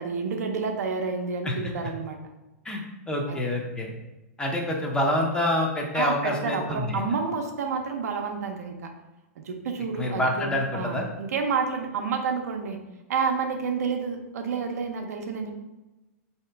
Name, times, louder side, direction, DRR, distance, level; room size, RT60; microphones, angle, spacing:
voice 1, 0.0-2.2 3.3-3.5 5.9-8.9 9.4-12.8 13.1-15.5, right 5 dB, 80° right, 4 dB, 0.6 m, -29 dB
voice 2, 3.1-3.9 4.4-7.0 10.0-11.0, left 1 dB, 10° left, 0 dB, 0.5 m, -27 dB
3.7 x 2.8 x 3.3 m, 1.1 s
hypercardioid pair, 135°, 8 cm